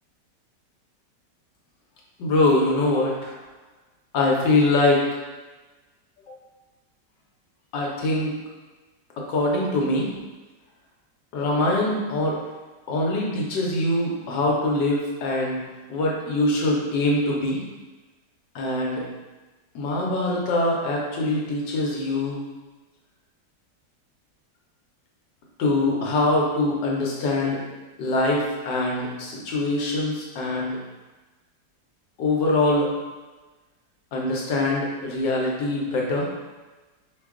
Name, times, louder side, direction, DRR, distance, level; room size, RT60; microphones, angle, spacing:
voice 1, 2.2-3.4 4.1-5.0 7.7-8.3 9.2-10.1 11.3-12.4 12.9-15.6 15.9-17.6 18.5-19.0 19.7-22.4 25.6-27.6 28.0-30.8 32.2-32.9 34.1-36.3, left 2 dB, 80° left, -2 dB, 1.5 m, -23 dB
4.8 x 2.3 x 3.6 m, 1.2 s
omnidirectional pair, 1.9 m